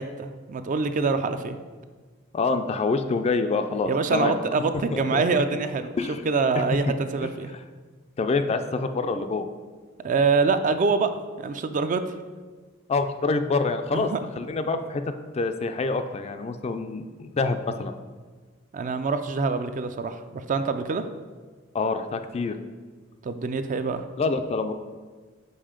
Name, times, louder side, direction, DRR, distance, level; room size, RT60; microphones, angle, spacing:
voice 1, 0.0-1.6 3.8-5.9 6.2-7.5 10.0-11.1 11.4-12.0 13.9-14.2 18.7-21.0 23.2-24.0, right 4 dB, 40° right, 9 dB, 0.4 m, -25 dB
voice 2, 2.3-4.4 4.9-5.4 6.0-6.2 6.9-7.0 8.2-9.5 12.9-14.1 14.4-15.0 15.3-18.0 21.7-22.6 24.2-24.7, left 3 dB, 30° left, 9 dB, 0.3 m, -26 dB
5.5 x 5.1 x 5.0 m, 1.4 s
head